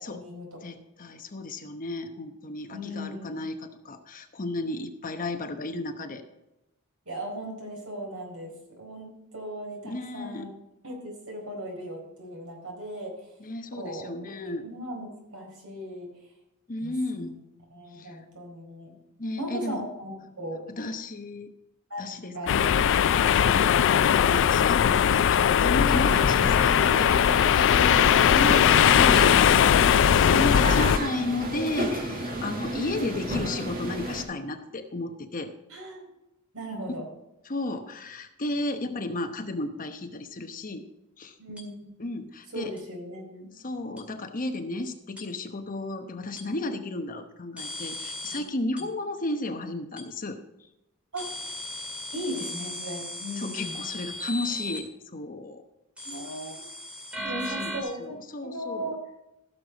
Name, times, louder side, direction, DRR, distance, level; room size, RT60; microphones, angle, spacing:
voice 1, 0.0-0.6 2.7-3.3 7.1-10.5 10.8-13.1 13.7-14.1 14.6-16.1 16.8-17.3 17.7-18.9 19.4-20.1 20.4-20.9 21.9-22.1 22.3-22.8 23.3-23.6 27.7-28.2 31.5-32.4 32.7-33.0 35.7-36.1 36.5-37.0 41.4-41.9 42.5-43.5 48.3-48.4 51.1-51.3 52.1-53.8 56.0-56.6 57.2-58.2 58.4-59.0, equal, 70° right, 0 dB, 4.6 m, -37 dB
voice 2, 0.6-3.6 3.8-6.2 9.8-10.5 13.4-14.7 16.7-17.4 17.9-18.2 19.2-19.8 20.7-21.5 22.0-22.9 23.4-27.1 28.3-35.5 37.4-40.9 41.2-41.3 42.0-42.7 43.6-50.4 53.4-55.6 57.3-58.9, left 2 dB, 40° left, 6 dB, 1.0 m, -33 dB
sound 1, 22.5-31.0, left 9 dB, 60° left, 0.4 m, -20 dB
sound 2, 25.9-34.2, right 1 dB, 40° right, 1.9 m, -32 dB
sound 3, 41.6-41.7 42.8-42.9 44.0-44.1 45.2-45.3 46.4-46.5 47.6-48.4 48.8-48.9 50.0-50.1 51.2-54.8 56.0-57.8, left 1 dB, 5° right, 2.3 m, -36 dB
15.5 x 6.8 x 4.1 m, 0.93 s
head